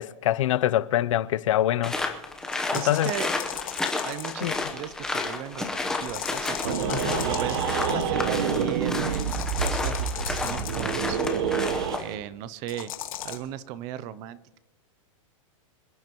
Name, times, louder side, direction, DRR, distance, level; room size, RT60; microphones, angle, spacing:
voice 1, 0.0-2.0 2.7-3.1 4.4-4.6 6.9-7.3 7.9-8.0, left 13 dB, 70° left, 0.6 m, -25 dB
sound 1, 1.8-12.1, left 3 dB, 5° left, 0.8 m, -32 dB
sound 2, 2.5-4.7 5.9-8.2 9.1-11.3 12.7-13.4, left 10 dB, 90° left, 1.9 m, -37 dB
voice 2, 2.7-3.3 4.0-9.3 9.6-12.9 13.2-14.6, right 11 dB, 20° right, 0.3 m, -36 dB
sound 3, 6.6-12.0, right 7 dB, 55° right, 1.0 m, -28 dB
26.0 x 10.5 x 2.9 m
supercardioid pair, 170°, 17 cm